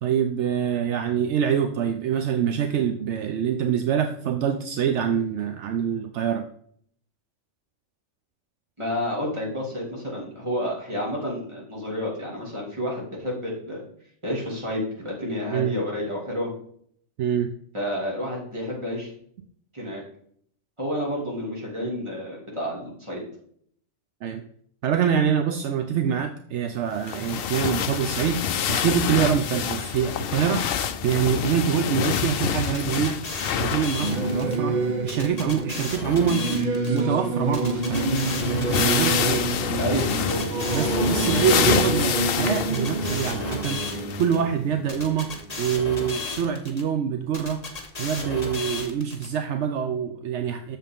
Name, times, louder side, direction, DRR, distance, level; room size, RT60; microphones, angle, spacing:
voice 1, 0.0-6.4 15.5-15.8 17.2-17.5 24.2-24.4 24.8-30.6 31.0-33.2 33.6-36.4 36.9-38.1 38.7-40.3 40.7-43.8 44.2-45.3 45.6-47.6 48.0-50.8, right 8 dB, 75° right, 7 dB, 0.9 m, -25 dB
voice 2, 8.8-13.8 14.2-16.5 17.7-19.1 19.7-20.0 20.8-23.2 39.8-40.4, equal, 25° right, -4 dB, 2.7 m, -30 dB
sound 1, 27.0-34.5 34.8-34.9 37.4-37.5 37.7-44.4 45.0-45.1 46.2-46.3, left 8 dB, 60° left, 0.7 m, -27 dB
sound 2, 32.6-34.6 35.1-37.0 37.5-39.5 40.0-41.9 42.4-44.4 44.9-46.8 47.3-49.3, left 3 dB, 35° left, 1.2 m, -34 dB
Singing / Musical instrument, 34.0-45.9, right 3 dB, 40° right, 0.9 m, -28 dB
7.4 x 6.8 x 3.6 m, 0.62 s
omnidirectional pair, 1.2 m